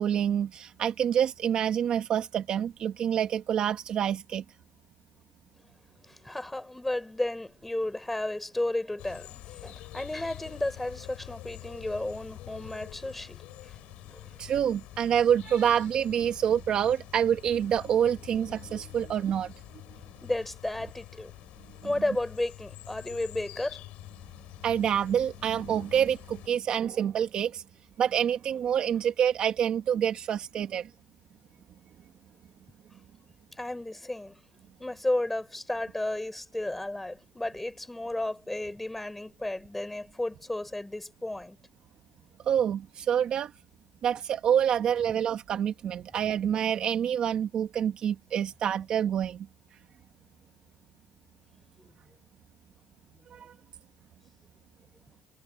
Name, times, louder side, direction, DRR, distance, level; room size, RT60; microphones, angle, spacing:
voice 1, 0.0-4.4 14.4-19.5 24.6-27.6 28.0-30.9 42.4-43.5 44.0-49.5 53.3-53.5, right 9 dB, 40° right, 1.4 m, -27 dB
voice 2, 6.1-13.8 14.1-14.2 20.2-21.3 21.8-23.8 33.6-34.4 34.8-41.6, left 1 dB, 5° left, 5.4 m, -33 dB
sound 1, 9.0-26.5, left 16 dB, 60° left, 6.3 m, -47 dB
cardioid pair, 150°, 2 cm